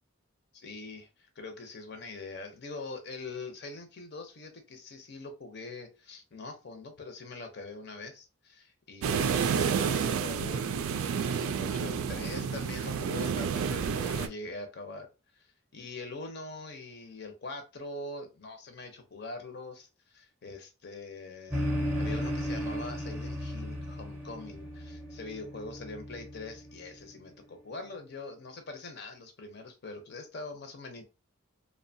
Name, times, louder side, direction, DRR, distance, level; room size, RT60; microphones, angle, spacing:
voice 1, 0.5-15.1 15.3-21.7 22.0-31.1, left 3 dB, 50° left, 5 dB, 0.6 m, -43 dB
sound 1, 9.0-14.3, right 6 dB, 80° right, 0.3 m, -30 dB
sound 2, 21.5-27.1, equal, 10° right, 0.6 m, -35 dB
2.7 x 2.1 x 2.6 m, 0.29 s
head